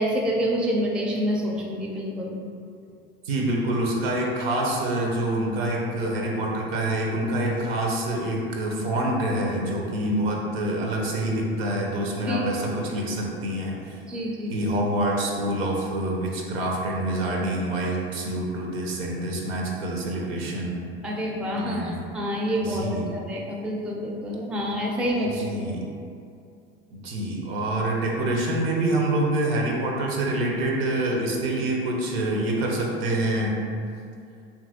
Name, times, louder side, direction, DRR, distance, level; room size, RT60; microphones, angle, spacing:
voice 1, 0.0-2.3 12.3-12.4 14.1-14.6 21.0-22.8 23.1-25.7, equal, 5° right, -2 dB, 0.3 m, -27 dB
voice 2, 3.3-14.0 14.5-20.8 21.6-22.0 22.6-23.1 25.2-25.9 26.9-33.6, right 1 dB, 80° right, -1 dB, 0.6 m, -26 dB
2.8 x 2.5 x 2.6 m, 2.4 s
hypercardioid pair, 75°, 30 cm